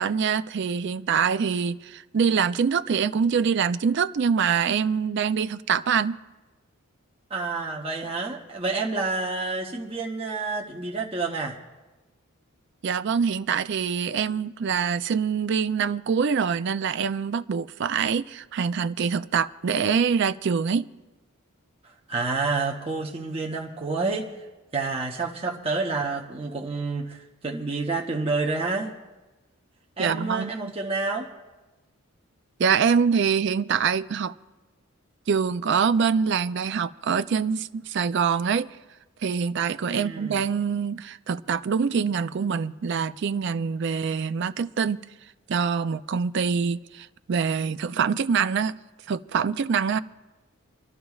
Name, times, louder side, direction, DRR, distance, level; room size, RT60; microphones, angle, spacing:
voice 1, 0.0-6.2 12.8-20.9 30.0-30.7 32.6-34.3 35.3-38.7 39.2-45.0 45.5-48.7 49.1-50.0, right 6 dB, 55° right, 0.4 m, -25 dB
voice 2, 7.3-11.5 22.1-24.5 24.7-28.9 30.0-31.3 39.9-40.4, right 3 dB, 25° right, 0.8 m, -29 dB
27.5 x 13.0 x 2.4 m
head